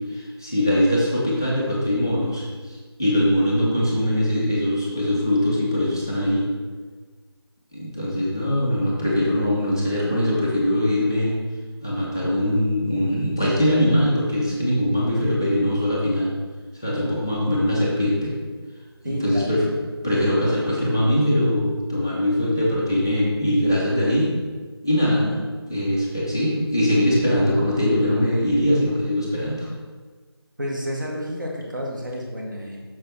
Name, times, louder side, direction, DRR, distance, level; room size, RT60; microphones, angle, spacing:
voice 1, 0.1-6.5 7.7-11.4 11.8-16.3 16.7-18.3 19.0-19.7 20.0-24.3 24.8-25.4 25.7-29.7, left 1 dB, 10° left, -6 dB, 0.5 m, -22 dB
voice 2, 19.0-19.5 30.6-32.8, equal, 50° right, -2 dB, 1.5 m, -30 dB
6.7 x 6.1 x 3.2 m, 1.5 s
figure-of-eight pair, 165°, 13 cm